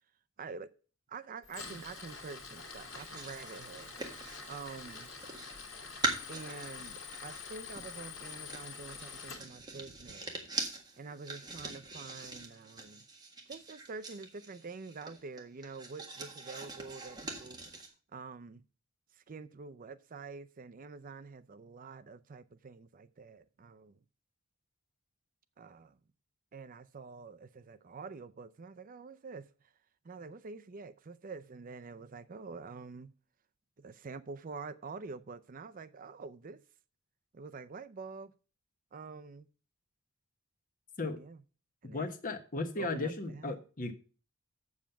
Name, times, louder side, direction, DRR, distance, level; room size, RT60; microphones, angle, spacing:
voice 1, 0.4-0.7 1.1-3.9 4.5-5.1 6.3-10.3 11.0-13.0 13.5-17.8 18.1-18.6 19.1-24.0 25.6-26.0 26.5-29.7 30.0-33.1 33.8-36.6 37.3-38.3 38.9-39.5 41.0-41.4 41.8-42.1 42.8-43.6, right 4 dB, 40° right, 0.4 m, -47 dB
Tools, 1.4-9.4, left 5 dB, 60° left, 2.0 m, -46 dB
sound 1, 2.8-5.6 6.0-17.9, right 3 dB, 20° right, 1.6 m, -42 dB
voice 2, 41.9-43.9, left 3 dB, 40° left, 1.2 m, -36 dB
7.3 x 7.2 x 5.7 m
head